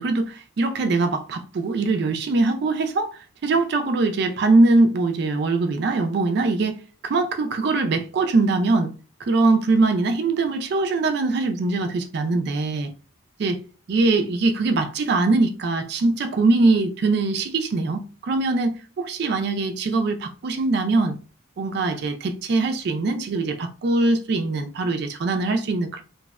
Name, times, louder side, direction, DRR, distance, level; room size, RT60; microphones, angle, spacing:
voice 1, 0.0-3.1 3.4-6.8 7.0-8.9 9.2-12.9 13.4-13.6 13.9-21.2 21.6-26.0, right 3 dB, 50° right, 0.3 m, -22 dB
2.6 x 2.1 x 2.3 m
head